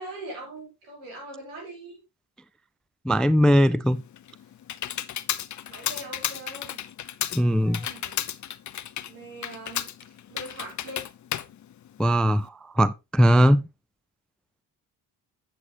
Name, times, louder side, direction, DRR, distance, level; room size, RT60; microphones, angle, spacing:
voice 1, 0.0-2.0 5.6-6.8 7.6-8.2 9.0-9.9 10.3-11.1, right 2 dB, 85° right, 4.2 m, -41 dB
voice 2, 3.1-4.0 7.3-7.8 12.0-13.7, equal, ahead, 0.3 m, -20 dB
Computer keyboard, 3.9-12.5, left 11 dB, 40° left, 0.6 m, -34 dB
7.8 x 7.8 x 2.9 m
hypercardioid pair, 55°, 46 cm